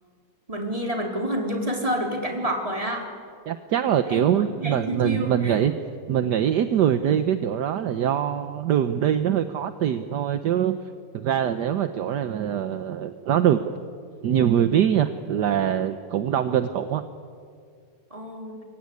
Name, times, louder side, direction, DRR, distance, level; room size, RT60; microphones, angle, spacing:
voice 1, 0.5-3.1 4.1-5.7 18.1-18.6, right 1 dB, 15° right, 2 dB, 4.3 m, -29 dB
voice 2, 3.5-5.7 6.1-10.8 11.1-13.6 14.2-17.0, right 9 dB, 65° right, 10 dB, 1.5 m, -23 dB
27.0 x 22.5 x 9.7 m, 2.2 s
omnidirectional pair, 2.0 m